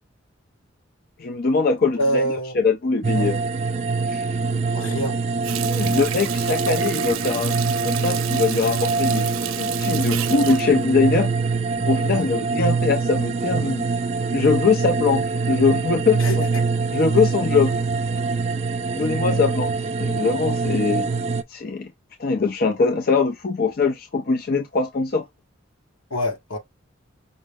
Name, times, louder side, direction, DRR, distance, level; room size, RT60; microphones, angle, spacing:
voice 1, 1.2-2.2 2.5-3.4 4.1-4.3 5.6-9.3 9.6-11.3 11.8-13.9 14.3-16.5 16.9-17.8 18.9-19.7 20.0-21.1 21.5-21.9 22.2-25.3, left 4 dB, 45° left, 0.5 m, -22 dB
voice 2, 1.9-2.5 3.1-3.3 4.7-5.2 5.8-6.1 12.1-12.3 16.2-16.4 26.1-26.6, equal, 90° left, 1.5 m, -26 dB
sound 1, 3.0-21.4, right 4 dB, 30° right, 0.3 m, -24 dB
Water tap faucet, 5.4-11.8 12.2-12.4, right 11 dB, 90° right, 0.5 m, -32 dB
5.3 x 2.0 x 3.5 m
head